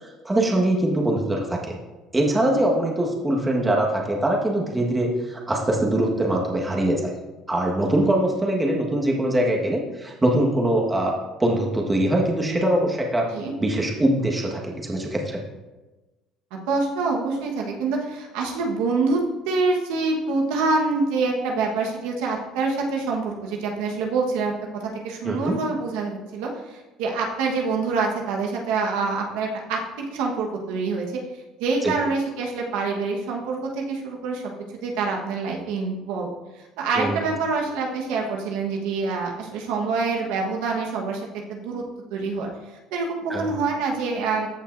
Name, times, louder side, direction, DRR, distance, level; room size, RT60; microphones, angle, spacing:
voice 1, 0.0-1.7 2.1-7.1 7.5-11.1 11.4-13.2 13.6-15.4 25.2-25.6 31.8-31.9 36.9-37.2 43.3-43.5, right 1 dB, 15° right, -1 dB, 1.5 m, -22 dB
voice 2, 16.7-29.8 30.1-31.2 31.6-34.5 34.8-36.3 36.6-41.2 41.5-41.8 42.1-44.5, right 4 dB, 85° right, 0 dB, 1.3 m, -26 dB
14.0 x 5.6 x 2.6 m, 1.1 s
cardioid pair, 115°, 0 cm